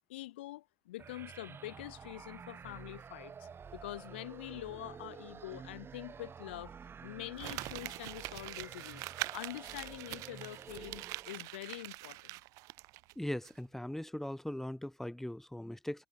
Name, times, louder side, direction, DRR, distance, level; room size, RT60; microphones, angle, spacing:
voice 1, 0.1-6.7 7.0-9.0 9.3-12.4, left 16 dB, 85° left, 7.3 m, -45 dB
sound 1, 1.0-11.6, right 6 dB, 40° right, 3.3 m, -50 dB
Crumpling crinkling, 7.4-13.1 13.4-13.5, right 22 dB, 75° right, 1.5 m, -43 dB
voice 2, 13.2-16.1, left 1 dB, 5° left, 5.4 m, -39 dB
hypercardioid pair, 55°, 6 cm